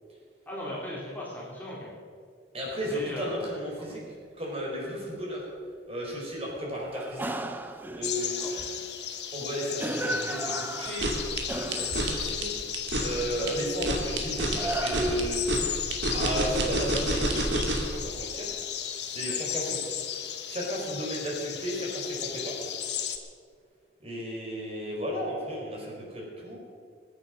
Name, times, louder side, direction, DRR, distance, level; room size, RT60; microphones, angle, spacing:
voice 1, 0.5-1.9 2.8-3.6 3.9-4.0 8.4-8.6 19.2-19.4, left 1 dB, 10° left, -6 dB, 3.0 m, -38 dB
voice 2, 2.5-4.0 4.4-5.4 5.9-7.6 7.9-8.4 9.3-12.5 13.0-15.4 16.1-17.4 17.8-18.5 19.1-19.8 20.5-22.7 24.0-26.6, equal, 35° right, -3 dB, 4.4 m, -34 dB
sound 1, 2.7-2.9 6.9-8.9 9.8-12.2 13.1-15.6 16.1-16.2, right 1 dB, 10° right, 0.7 m, -36 dB
sound 2, 8.0-23.2, left 9 dB, 75° left, 1.4 m, -35 dB
sound 3, 10.9-18.0, right 1 dB, 85° right, 2.5 m, -29 dB
21.0 x 9.1 x 6.4 m, 2.1 s
head